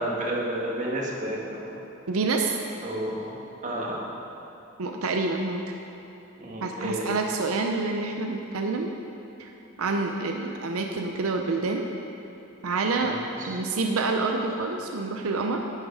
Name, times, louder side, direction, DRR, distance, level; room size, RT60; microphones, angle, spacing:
voice 1, 0.0-1.8 2.8-3.3 3.6-4.0 6.4-7.1 12.9-13.6, right 1 dB, 40° right, -2 dB, 1.4 m, -31 dB
voice 2, 2.1-2.5 4.8-5.6 6.6-8.9 9.4-9.5 9.8-11.9 12.6-13.1 13.5-15.6, right 3 dB, 85° right, 3 dB, 0.6 m, -27 dB
11.0 x 6.5 x 5.0 m, 3.0 s
head